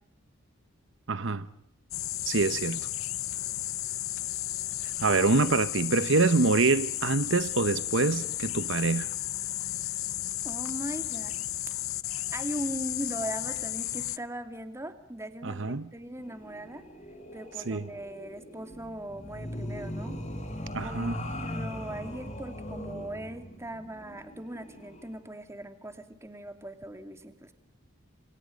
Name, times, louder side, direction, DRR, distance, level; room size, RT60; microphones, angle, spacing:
voice 1, 1.1-1.5 2.2-2.9 4.8-9.1 15.4-15.9 17.7-17.9 20.7-21.2, right 3 dB, 65° right, 0.9 m, -25 dB
Crickets and Birds, 1.9-14.2, left 15 dB, 90° left, 0.8 m, -33 dB
voice 2, 10.4-11.3 12.3-16.8 17.3-20.2 20.8-21.2 21.4-27.5, right 1 dB, 15° right, 2.6 m, -39 dB
sound 1, 16.2-25.1, left 1 dB, 35° left, 5.2 m, -40 dB
29.5 x 25.5 x 5.2 m
head